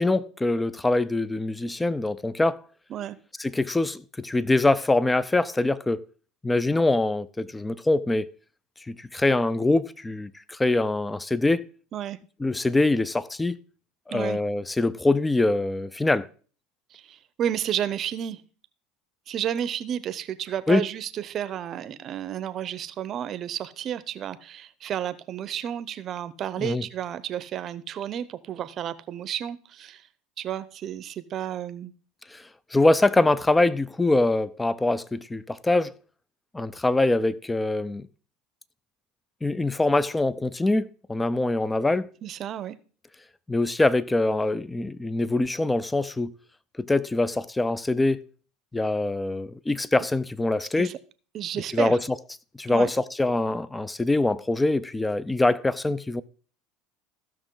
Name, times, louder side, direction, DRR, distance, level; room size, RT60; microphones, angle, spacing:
voice 1, 0.0-2.6 3.4-6.0 6.4-8.3 8.9-11.6 12.4-13.6 14.1-16.3 20.7-20.9 26.6-26.8 32.3-32.4 32.7-35.9 36.5-38.1 39.4-42.1 43.5-46.3 46.8-48.2 48.7-51.0 51.7-52.1 52.6-56.2, left 2 dB, 10° left, 0.5 m, -24 dB
voice 2, 16.9-18.4 19.3-30.0 30.4-31.9 42.2-42.8 50.8-50.9 51.3-52.0 52.7-52.9, right 10 dB, 45° right, 0.8 m, -32 dB
15.0 x 6.1 x 3.8 m
supercardioid pair, 100°, 0 cm